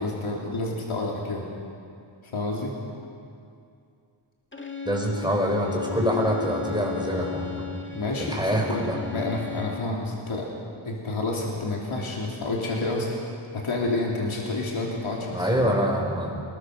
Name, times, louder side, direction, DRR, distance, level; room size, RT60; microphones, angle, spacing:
voice 1, 0.0-1.4 2.3-2.7 7.9-10.5 10.8-13.1 13.5-15.5, left 2 dB, 85° left, -2 dB, 3.1 m, -29 dB
Bowed string instrument, 4.5-10.0, left 7 dB, 25° left, 1.7 m, -37 dB
voice 2, 4.8-7.7 8.2-9.0 15.3-16.4, equal, 10° right, 0 dB, 4.8 m, -25 dB
25.0 x 21.0 x 6.5 m, 2.5 s
wide cardioid pair, 110°, 47 cm